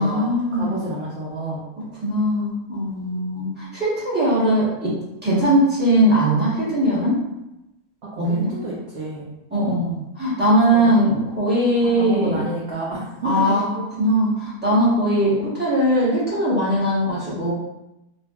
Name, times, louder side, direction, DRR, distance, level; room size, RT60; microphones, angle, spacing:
voice 1, 0.0-0.8 2.0-4.9 5.2-7.2 8.2-8.5 9.5-12.5 13.2-13.7 14.0-17.5, equal, 10° right, -9 dB, 0.7 m, -20 dB
voice 2, 0.5-1.6 8.0-9.2 10.7-10.9 11.8-13.6, right 2 dB, 75° right, -7 dB, 0.5 m, -29 dB
2.6 x 2.3 x 2.2 m, 0.91 s
omnidirectional pair, 1.7 m